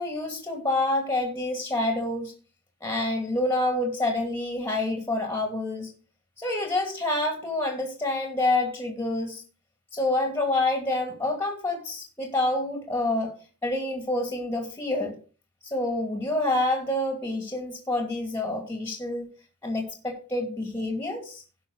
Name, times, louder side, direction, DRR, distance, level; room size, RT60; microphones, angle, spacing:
voice 1, 0.0-2.3 2.8-5.9 6.4-9.4 9.9-13.3 13.6-15.2 15.7-19.2 19.6-21.4, left 2 dB, 10° left, 3 dB, 2.3 m, -27 dB
16.5 x 5.8 x 3.9 m, 0.36 s
head